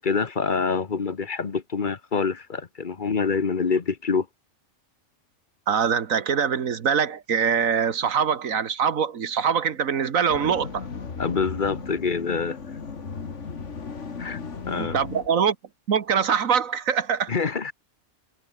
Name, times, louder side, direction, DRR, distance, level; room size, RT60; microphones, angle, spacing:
voice 1, 0.0-4.3 11.2-12.6 14.2-14.4 14.7-15.0 17.3-17.7, left 5 dB, 40° left, 1.2 m, -26 dB
voice 2, 5.7-10.8 14.8-15.5 15.9-17.3, right 7 dB, 80° right, 1.7 m, -23 dB
sound 1, 10.3-15.3, left 5 dB, 60° left, 2.2 m, -36 dB
omnidirectional pair, 1.4 m